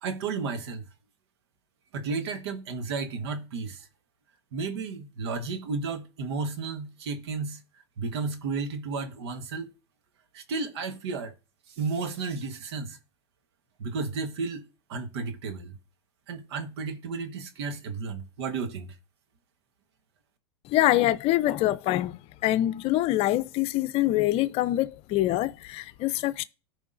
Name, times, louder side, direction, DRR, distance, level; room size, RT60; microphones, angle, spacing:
voice 1, 0.0-0.8 1.9-3.9 4.5-7.6 8.0-9.7 10.3-11.3 11.7-13.0 13.8-15.8 16.3-18.9, right 4 dB, 75° right, 1.3 m, -33 dB
voice 2, 20.6-26.4, left 15 dB, 45° left, 0.6 m, -25 dB
14.0 x 5.0 x 2.6 m
hypercardioid pair, 110°, 14 cm